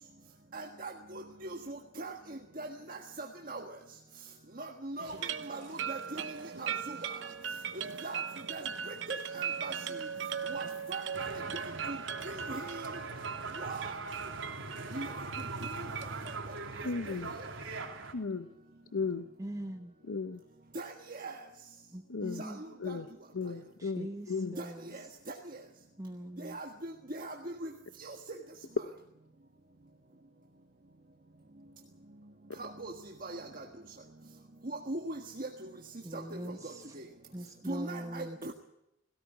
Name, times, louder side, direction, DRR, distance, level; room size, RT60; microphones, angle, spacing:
voice 1, 0.5-3.6 4.6-7.2 7.7-8.2 8.5-10.0 10.5-12.0 12.2-12.9 13.6-14.0 14.9-15.2 15.6-15.9 16.5-17.5 20.7-21.4 22.4-23.0 24.6-25.4 26.4-27.7 28.0-28.4 32.6-33.7 34.6-35.7 36.1-36.4 36.6-37.0 37.7-38.5, right 2 dB, 45° right, 1 dB, 1.5 m, -41 dB
sound 1, 5.0-16.4, right 7 dB, 60° right, 0.9 m, -39 dB
sound 2, 11.1-18.1, right 3 dB, 80° right, 3.3 m, -41 dB
voice 2, 16.8-17.3 18.1-18.5 18.9-19.3 20.1-20.4 22.1-22.4 22.8-24.6 32.5-32.6, left 4 dB, 80° left, 10 dB, 0.8 m, -36 dB
voice 3, 19.4-19.9 21.9-22.6 23.8-24.9 26.0-26.6 36.0-36.9 37.3-38.4, right 1 dB, 15° right, 5 dB, 1.0 m, -42 dB
17.5 x 17.0 x 9.5 m, 0.85 s
head